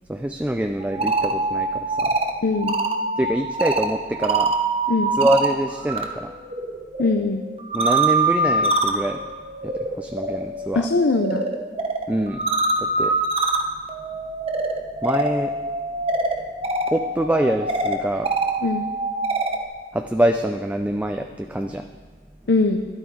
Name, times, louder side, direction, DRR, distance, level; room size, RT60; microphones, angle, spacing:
voice 1, 0.1-2.2 3.2-4.6 5.2-6.3 7.7-9.2 9.6-10.9 12.1-12.5 12.8-13.2 15.0-15.5 16.9-18.3 19.9-21.8, right 1 dB, 10° right, 5 dB, 0.4 m, -25 dB
sound 1, 0.8-6.1 6.4-19.6, right 2 dB, 35° right, 0.9 m, -25 dB
voice 2, 2.4-2.8 4.9-5.1 7.0-7.4 10.8-11.4 18.6-18.9 22.5-22.8, left 3 dB, 80° left, 6 dB, 0.6 m, -21 dB
12.0 x 11.5 x 4.7 m, 1.5 s
head